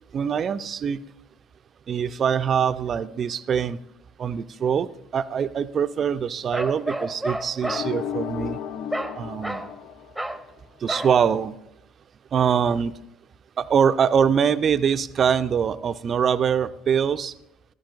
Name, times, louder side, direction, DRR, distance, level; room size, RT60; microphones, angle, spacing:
voice 1, 0.1-1.0 1.9-3.8 4.2-8.6 9.2-9.6 10.8-11.5 12.3-12.9 13.6-17.3, right 7 dB, 45° right, 13 dB, 0.5 m, -23 dB
Bark, 6.5-7.9 8.9-9.2 9.4-9.7 10.1-10.4 10.9-11.2, right 1 dB, ahead, 0.8 m, -30 dB
sound 1, 7.6-10.6, left 9 dB, 60° left, 0.4 m, -33 dB
14.5 x 12.5 x 2.5 m, 0.82 s
hypercardioid pair, 60°, 0 cm